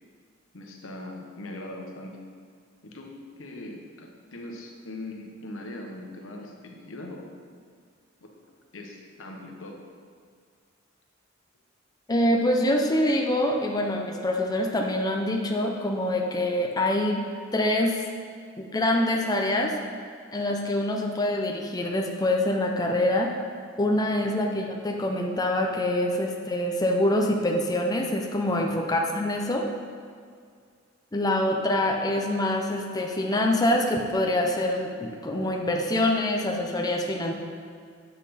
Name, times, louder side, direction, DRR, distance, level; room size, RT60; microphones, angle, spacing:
voice 1, 0.5-2.2 2.8-7.3 8.2-8.3 8.7-9.8 24.2-24.4 28.5-28.9, left 1 dB, 90° left, 1 dB, 1.0 m, -41 dB
voice 2, 12.1-17.2 17.5-18.0 18.6-19.7 20.3-23.3 23.8-29.6 31.1-37.3, left 1 dB, 20° left, 1 dB, 0.6 m, -25 dB
8.2 x 5.9 x 4.2 m, 2.1 s
head